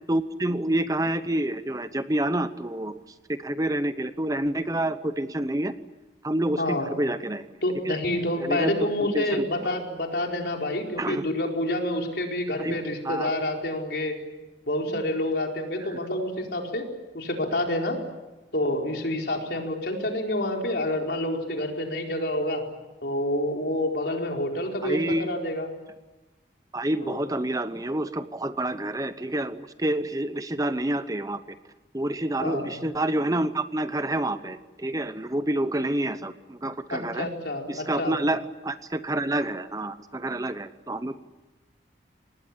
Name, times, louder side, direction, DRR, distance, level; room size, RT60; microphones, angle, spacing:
voice 1, 0.1-3.0 3.3-5.7 6.2-7.5 7.8-8.0 8.4-8.7 9.1-9.4 11.0-11.2 12.6-12.8 13.0-13.3 14.9-15.0 15.8-16.0 24.8-25.3 26.7-31.6 31.9-37.3 37.7-41.2, right 1 dB, 20° right, 11 dB, 0.8 m, -28 dB
voice 2, 6.6-6.9 7.6-14.2 14.7-16.8 17.1-18.0 18.5-22.6 23.0-25.7 27.0-27.2 32.4-32.7 36.9-38.2, left 1 dB, 60° left, 1 dB, 4.6 m, -28 dB
26.0 x 20.0 x 10.0 m, 1.1 s
head